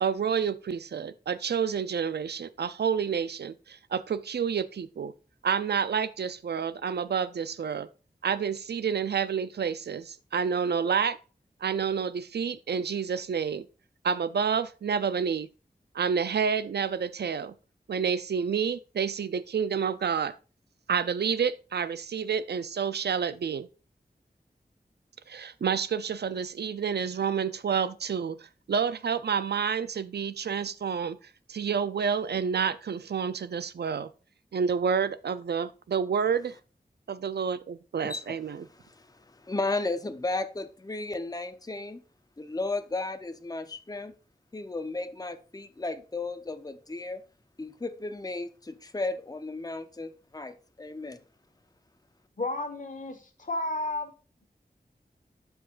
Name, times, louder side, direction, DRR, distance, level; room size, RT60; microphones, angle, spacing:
voice 1, 0.0-5.1 5.4-7.9 8.2-11.2 11.6-13.7 14.0-15.5 15.9-17.5 17.9-20.3 20.9-23.7 25.3-31.2 31.5-34.1 34.5-36.6 37.1-38.6, right 6 dB, 85° right, 0.4 m, -29 dB
voice 2, 38.8-42.0 42.4-44.1 44.5-47.2 47.6-51.2, left 2 dB, 20° left, 0.7 m, -34 dB
voice 3, 52.4-54.1, left 2 dB, 50° left, 1.4 m, -32 dB
12.5 x 4.8 x 2.5 m
wide cardioid pair, 65°, 17 cm